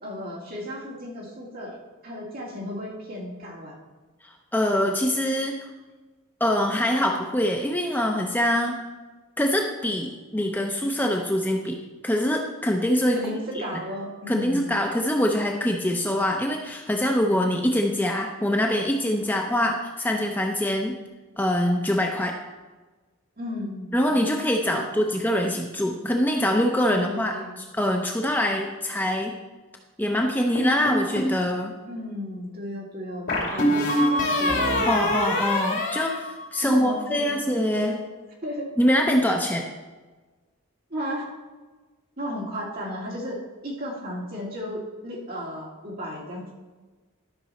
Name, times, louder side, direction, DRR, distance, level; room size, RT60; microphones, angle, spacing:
voice 1, 0.0-1.8 2.0-3.8 13.1-14.8 23.4-23.9 24.7-24.9 26.9-27.6 31.8-34.8 36.6-38.0 38.4-38.7 40.9-41.3 42.2-46.5, equal, 45° right, -3 dB, 2.3 m, -34 dB
voice 2, 4.5-5.7 6.4-8.8 9.4-13.2 13.5-13.6 14.3-21.0 21.4-22.4 23.9-29.3 30.0-31.7 34.9-38.0 38.8-39.7, left 1 dB, 10° left, 1 dB, 0.6 m, -24 dB
sound 1, 30.6-31.4 33.3-36.9, left 1 dB, 55° left, 2.9 m, -24 dB
12.5 x 6.1 x 4.2 m, 1.3 s
head